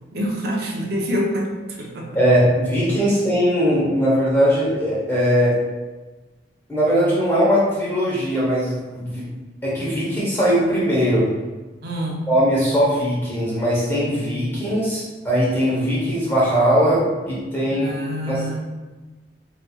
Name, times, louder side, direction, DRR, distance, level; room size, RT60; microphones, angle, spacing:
voice 1, 0.1-2.2 11.8-12.3 17.7-18.6, equal, 55° right, -1 dB, 0.6 m, -26 dB
voice 2, 2.1-5.5 6.7-9.2 9.6-11.3 12.3-17.9 18.3-18.4, equal, 10° left, -8 dB, 0.9 m, -20 dB
4.1 x 2.7 x 2.3 m, 1.2 s
head